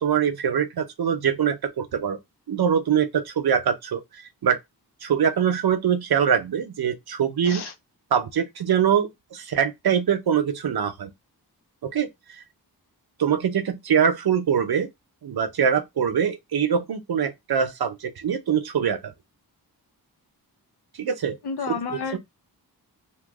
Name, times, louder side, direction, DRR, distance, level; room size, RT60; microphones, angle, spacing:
voice 1, 0.0-2.2 2.5-4.6 5.0-7.6 8.1-11.1 11.9-12.4 13.2-14.9 15.2-19.1 21.0-21.4 22.1-22.2, right 8 dB, 70° right, 0.7 m, -23 dB
voice 2, 7.4-7.7 21.4-22.2, left 5 dB, 90° left, 0.8 m, -30 dB
3.0 x 2.3 x 3.4 m
wide cardioid pair, 135°, 38 cm